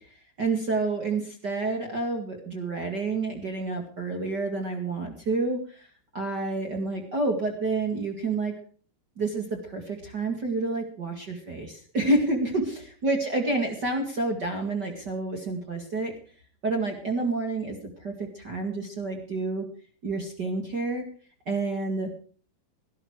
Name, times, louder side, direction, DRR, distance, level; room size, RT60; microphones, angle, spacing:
voice 1, 0.4-5.9 6.1-8.5 9.2-16.1 16.6-19.7 20.0-21.0 21.4-22.1, right 2 dB, 40° right, 3 dB, 1.7 m, -29 dB
17.0 x 12.5 x 4.7 m, 0.43 s
omnidirectional pair, 4.9 m